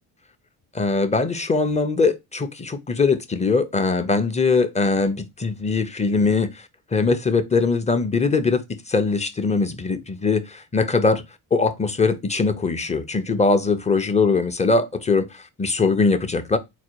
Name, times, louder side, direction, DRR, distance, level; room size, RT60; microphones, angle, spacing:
voice 1, 0.7-6.5 6.9-11.2 11.5-16.6, left 4 dB, 15° left, 0.6 m, -21 dB
3.9 x 2.3 x 4.5 m
cardioid pair, 75°, 41 cm